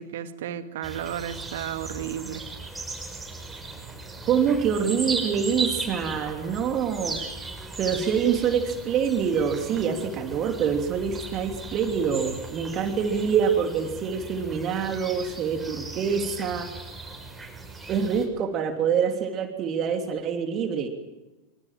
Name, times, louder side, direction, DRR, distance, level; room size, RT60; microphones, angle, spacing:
voice 1, 0.0-2.5, right 10 dB, 55° right, 10 dB, 2.1 m, -33 dB
sound 1, 0.8-18.3, right 3 dB, 10° right, 6.5 m, -37 dB
voice 2, 4.2-7.2 7.8-16.7 17.9-20.9, right 7 dB, 30° right, 5 dB, 3.0 m, -25 dB
26.0 x 25.0 x 7.5 m, 1.1 s
figure-of-eight pair, 90°, 0 cm